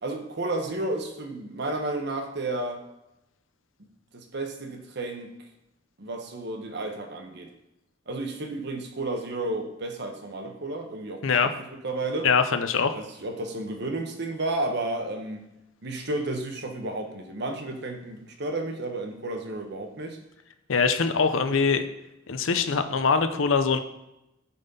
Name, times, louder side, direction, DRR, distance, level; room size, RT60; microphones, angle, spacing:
voice 1, 0.0-2.8 4.1-5.3 6.0-7.5 8.1-12.3 12.9-15.4 15.8-20.2, right 2 dB, 60° right, 5 dB, 1.1 m, -32 dB
voice 2, 12.2-13.0 20.7-21.8 22.3-23.8, left 5 dB, 90° left, 9 dB, 0.7 m, -23 dB
8.4 x 4.2 x 5.4 m, 0.89 s
head